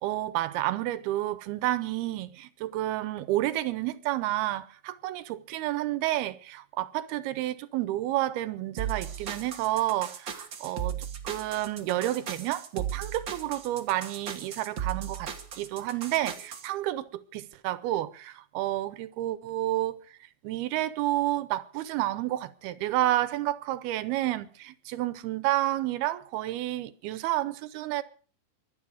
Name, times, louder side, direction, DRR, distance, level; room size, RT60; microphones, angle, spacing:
voice 1, 0.0-11.0 11.2-20.2 20.4-28.0, right 15 dB, 85° right, 2.8 m, -30 dB
sound 1, 8.8-16.7, right 8 dB, 55° right, 1.4 m, -36 dB
24.0 x 9.4 x 4.9 m
omnidirectional pair, 4.4 m